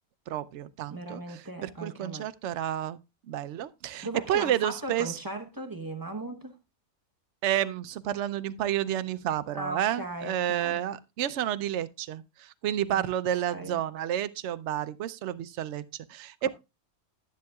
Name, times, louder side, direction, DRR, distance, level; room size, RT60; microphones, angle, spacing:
voice 1, 0.3-3.0 3.3-5.2 7.4-16.5, right 11 dB, 60° right, 0.8 m, -30 dB
voice 2, 0.9-2.3 4.0-6.5 9.5-10.8 12.9-13.0 13.3-13.8 16.4-16.5, right 2 dB, 20° right, 0.8 m, -38 dB
11.5 x 10.5 x 2.3 m
omnidirectional pair, 1.5 m